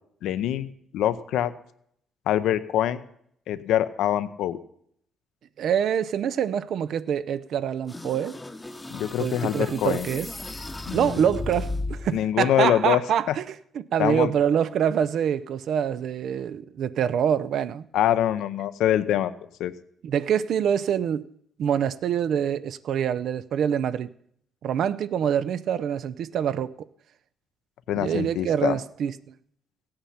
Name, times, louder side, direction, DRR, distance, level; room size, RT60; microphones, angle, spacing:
voice 1, 0.2-0.7 0.9-1.5 2.3-3.0 3.5-4.6 8.9-10.1 10.9-11.2 12.1-13.0 13.3-13.4 14.0-14.3 17.9-19.3 19.6-19.7 27.9-28.8, left 11 dB, 85° left, 0.7 m, -24 dB
voice 2, 5.6-8.4 9.2-10.3 10.9-17.9 20.0-21.3 21.6-24.1 24.6-26.9 28.0-29.1, right 8 dB, 70° right, 0.5 m, -25 dB
sound 1, 7.9-12.2, left 2 dB, 15° left, 0.8 m, -35 dB
15.5 x 8.8 x 5.7 m
cardioid pair, 90°, 0 cm